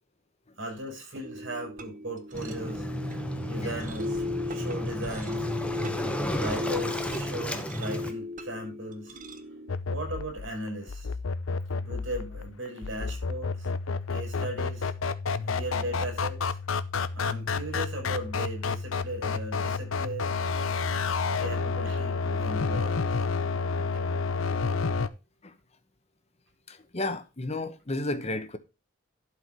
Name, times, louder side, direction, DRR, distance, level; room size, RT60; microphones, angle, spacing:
voice 1, 0.6-2.9 3.1-5.5 6.3-9.1 9.8-11.1 11.8-13.7 14.1-14.9 15.4-16.6 17.1-20.3 21.3-23.1, right 1 dB, 65° right, 6.5 m, -37 dB
sound 1, 1.2-9.8, left 2 dB, 40° right, 1.1 m, -36 dB
Waves surf, 2.3-8.1, left 1 dB, 5° left, 1.1 m, -33 dB
sound 2, 9.7-25.1, left 4 dB, 85° left, 0.7 m, -30 dB
voice 2, 26.7-28.6, left 2 dB, 30° left, 1.0 m, -33 dB
11.5 x 4.6 x 6.0 m
head